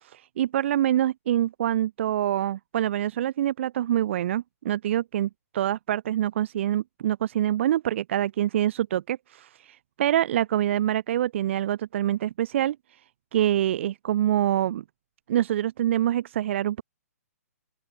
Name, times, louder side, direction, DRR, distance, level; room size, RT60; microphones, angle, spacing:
voice 1, 0.0-13.0 13.3-14.8 15.3-16.8, right 12 dB, 50° right, 2.0 m, -25 dB
open air
hypercardioid pair, 155°, 9 cm